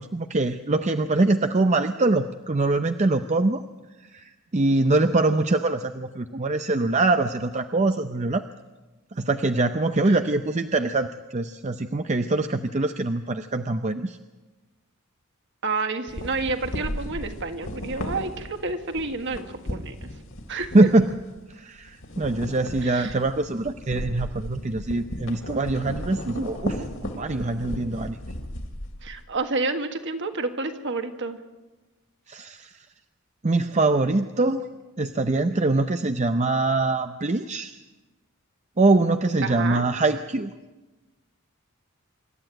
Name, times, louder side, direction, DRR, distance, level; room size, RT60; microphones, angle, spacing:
voice 1, 0.0-3.6 4.1-8.4 9.2-14.2 20.7-21.1 21.5-26.8 27.1-28.2 32.3-32.7 33.4-34.7 35.0-37.8 38.8-40.5, right 2 dB, 30° right, 8 dB, 0.6 m, -23 dB
voice 2, 15.6-20.1 20.5-20.9 22.8-23.2 29.0-31.4 39.4-39.8, right 3 dB, 55° right, 6 dB, 1.8 m, -29 dB
sound 1, 16.1-21.5 21.8-29.3, left 1 dB, 60° left, 2.7 m, -35 dB
26.0 x 13.0 x 9.1 m, 1.2 s
head